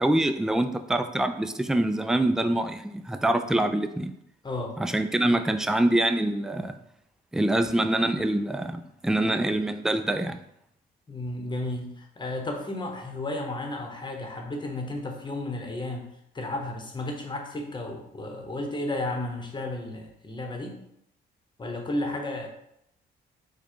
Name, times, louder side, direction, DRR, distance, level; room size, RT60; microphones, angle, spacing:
voice 1, 0.0-4.1 4.8-6.8 7.3-10.4, right 1 dB, 5° right, 8 dB, 0.3 m, -25 dB
voice 2, 4.4-4.8 11.1-16.1 16.3-20.8 21.6-22.5, left 2 dB, 25° left, 2 dB, 0.9 m, -33 dB
4.6 x 2.3 x 4.5 m, 0.75 s
cardioid pair, 90°, 20 cm